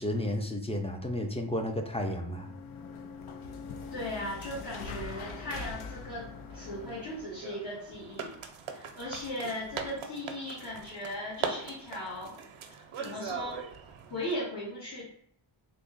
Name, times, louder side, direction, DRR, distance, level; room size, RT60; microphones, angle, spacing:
voice 1, 0.0-2.5, left 1 dB, 15° left, 4 dB, 0.4 m, -32 dB
sound 1, 2.0-7.5, left 4 dB, 85° left, 0.5 m, -43 dB
voice 2, 3.9-6.3 6.5-8.3 8.7-12.3 13.0-13.6 14.1-15.0, left 1 dB, 55° left, -9 dB, 1.5 m, -37 dB
sound 2, 6.5-14.3, right 6 dB, 85° right, 0.6 m, -41 dB
3.4 x 2.1 x 3.8 m, 0.66 s
wide cardioid pair, 95°, 48 cm